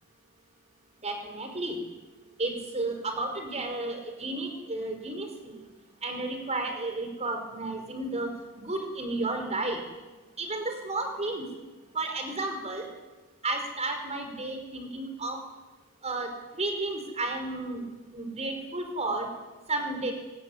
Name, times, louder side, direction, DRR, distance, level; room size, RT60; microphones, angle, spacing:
voice 1, 1.0-1.8 2.4-5.6 6.0-8.3 8.6-9.8 10.4-11.5 11.9-12.9 13.4-15.4 16.0-17.8 18.1-19.3 19.7-20.1, right 2 dB, 30° right, 5 dB, 5.2 m, -32 dB
24.5 x 20.0 x 9.9 m, 1.3 s
head